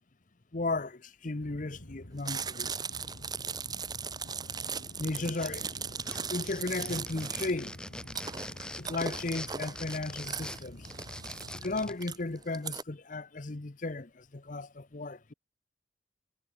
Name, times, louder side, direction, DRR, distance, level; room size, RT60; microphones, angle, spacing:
voice 1, 0.5-2.7 4.5-5.9 6.1-7.7 8.7-10.8 11.5-15.3, left 2 dB, 45° left, 0.9 m, -35 dB
sound 1, 1.4-12.0, left 1 dB, 65° left, 3.0 m, -49 dB
Chewing mastication, 2.2-12.8, right 6 dB, 20° right, 1.2 m, -38 dB
sound 2, 5.1-5.8 6.0-12.0, left 1 dB, 5° left, 1.6 m, -43 dB
head